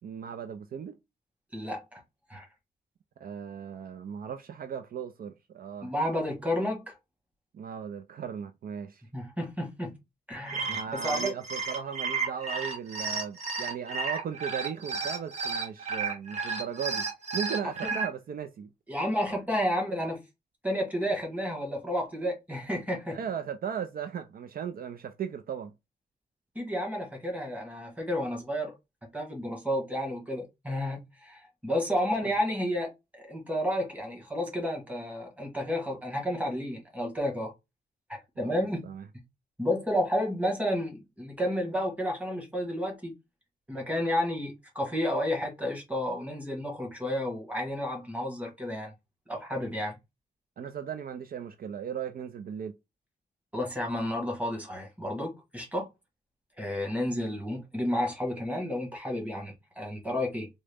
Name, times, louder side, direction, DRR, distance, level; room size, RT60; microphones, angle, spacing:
voice 1, 0.0-1.0 3.2-5.9 7.5-9.0 10.5-18.7 23.1-25.7 38.4-39.1 50.6-52.8, right 8 dB, 60° right, 0.4 m, -37 dB
voice 2, 1.5-2.0 2.3-2.5 5.8-7.0 9.1-9.9 10.3-10.8 11.0-11.3 18.9-20.2 20.6-23.2 26.5-28.7 29.1-37.5 38.1-38.9 39.6-43.1 43.7-48.9 49.3-50.0 53.5-55.9 56.6-60.5, equal, 10° right, 1.3 m, -31 dB
sound 1, 10.3-18.1, right 4 dB, 40° right, 1.1 m, -32 dB
3.7 x 2.1 x 3.4 m
wide cardioid pair, 170°, 17 cm